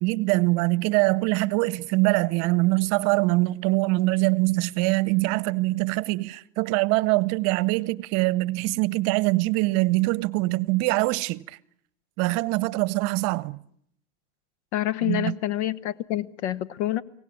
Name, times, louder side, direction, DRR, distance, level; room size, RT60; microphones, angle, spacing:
voice 1, 0.0-11.6 12.2-13.6 15.0-15.4, right 22 dB, 45° right, 0.9 m, -23 dB
voice 2, 14.7-17.0, left 14 dB, 70° left, 1.4 m, -27 dB
24.0 x 18.0 x 9.7 m
hypercardioid pair, 105°, 35 cm